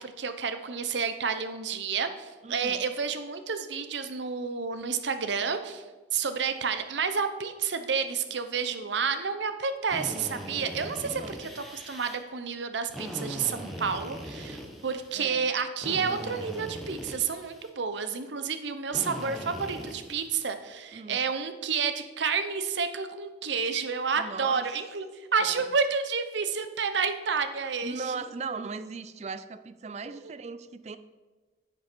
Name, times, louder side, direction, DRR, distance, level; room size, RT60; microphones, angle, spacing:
voice 1, 0.0-5.8 6.1-28.0 30.1-30.2, right 5 dB, 70° right, 9 dB, 0.7 m, -30 dB
voice 2, 2.4-2.8 11.0-11.4 15.1-15.5 20.9-21.2 24.2-24.7 25.4-25.7 27.8-31.0, right 4 dB, 35° right, 13 dB, 0.4 m, -38 dB
Drill, 9.9-12.2 12.9-15.1 15.8-17.7 18.9-20.3, equal, ahead, 1.1 m, -40 dB
10.0 x 6.8 x 4.4 m, 1.3 s
head